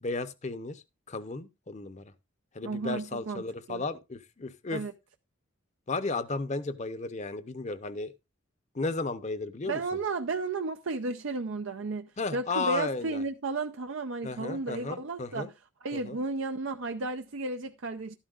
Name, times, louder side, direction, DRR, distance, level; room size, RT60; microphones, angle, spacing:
voice 1, 0.0-2.1 2.5-4.8 5.9-8.1 8.7-9.8 12.2-13.2 14.2-15.5 15.9-16.2, left 3 dB, 35° left, 0.7 m, -34 dB
voice 2, 2.6-3.4 3.7-3.8 4.7-4.9 9.7-15.5 15.8-18.2, right 3 dB, 70° right, 0.6 m, -33 dB
12.5 x 11.5 x 2.4 m
head